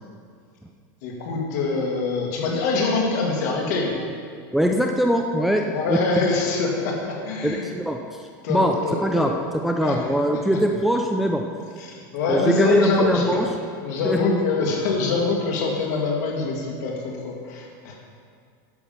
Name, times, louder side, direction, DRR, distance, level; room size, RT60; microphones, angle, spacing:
voice 1, 1.0-3.9 5.6-7.6 8.4-9.3 9.8-10.0 11.8-13.4 13.8-18.0, left 3 dB, 60° left, -1 dB, 2.2 m, -24 dB
voice 2, 4.5-5.6 5.9-6.0 7.4-8.0 8.5-8.7 9.0-9.3 9.6-11.4 12.3-13.5 14.0-14.4, equal, ahead, 2 dB, 0.3 m, -22 dB
10.5 x 7.2 x 5.8 m, 2.1 s
supercardioid pair, 170°, 11 cm